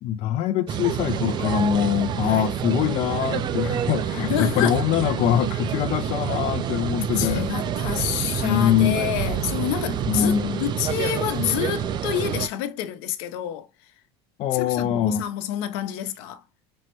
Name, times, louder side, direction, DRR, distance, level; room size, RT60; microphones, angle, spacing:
voice 1, 0.0-7.5 8.4-9.1 10.1-10.6 14.4-15.2, left 10 dB, 45° left, 0.4 m, -23 dB
sound 1, 0.7-12.5, right 9 dB, 35° right, 0.4 m, -27 dB
voice 2, 4.3-4.8 7.1-13.7 14.5-16.4, left 11 dB, 75° left, 0.7 m, -28 dB
5.2 x 2.1 x 3.0 m
supercardioid pair, 120°, 14 cm